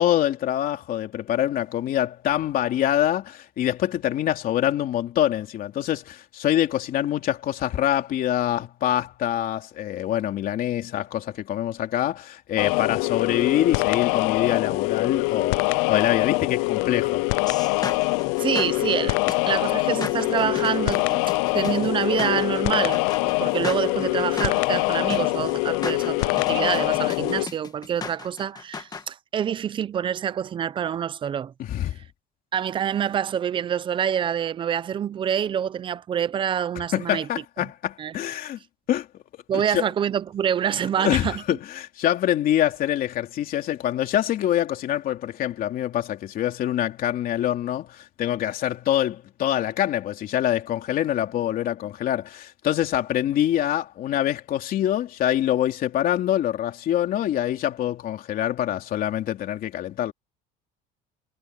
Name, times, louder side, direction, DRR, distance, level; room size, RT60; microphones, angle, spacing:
voice 1, 0.0-17.2 31.6-32.0 36.8-38.6 38.9-39.2 39.5-39.9 41.0-60.1, left 12 dB, 45° left, 3.2 m, -25 dB
sound 1, 12.6-27.5, left 28 dB, 85° left, 0.4 m, -24 dB
sound 2, 17.5-29.0, left 5 dB, 20° left, 1.4 m, -36 dB
voice 2, 18.4-21.2 21.5-31.5 32.5-37.3 38.0-38.1 39.5-41.3, right 9 dB, 25° right, 0.5 m, -26 dB
cardioid pair, 155°, 21 cm